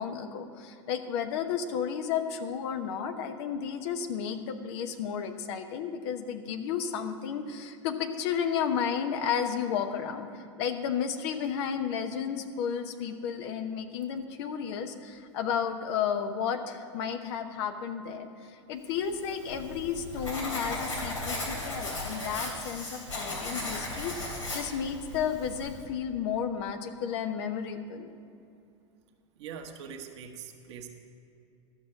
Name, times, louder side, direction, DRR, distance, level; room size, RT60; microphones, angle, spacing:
voice 1, 0.0-28.1, left 7 dB, 60° left, 7 dB, 1.0 m, -32 dB
Writing, 19.1-25.8, left 1 dB, 90° left, 3.2 m, -36 dB
voice 2, 29.4-30.9, right 7 dB, 65° right, 4 dB, 1.3 m, -42 dB
12.5 x 6.4 x 6.9 m, 2.6 s
hypercardioid pair, 90°, 16 cm